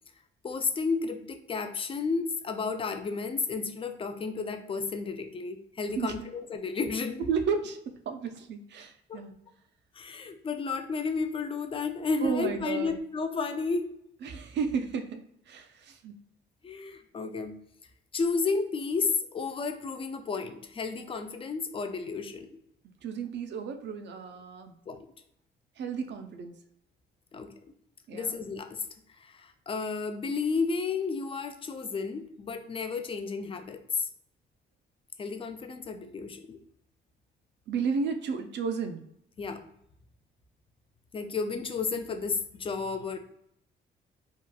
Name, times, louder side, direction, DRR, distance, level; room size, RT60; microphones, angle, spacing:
voice 1, 0.4-7.2 9.1-9.2 10.0-13.9 16.6-17.6 18.1-22.5 24.9-25.1 27.3-27.5 28.1-28.9 29.2-34.1 35.2-36.6 39.4-39.6 41.1-43.2, left 4 dB, 25° left, 7 dB, 0.4 m, -32 dB
voice 2, 7.2-9.3 12.2-13.0 14.2-16.1 23.0-24.7 25.8-26.5 28.1-28.3 37.7-39.0, right 5 dB, 65° right, 6 dB, 0.4 m, -33 dB
2.8 x 2.3 x 2.2 m, 0.76 s
cardioid pair, 90°, 20 cm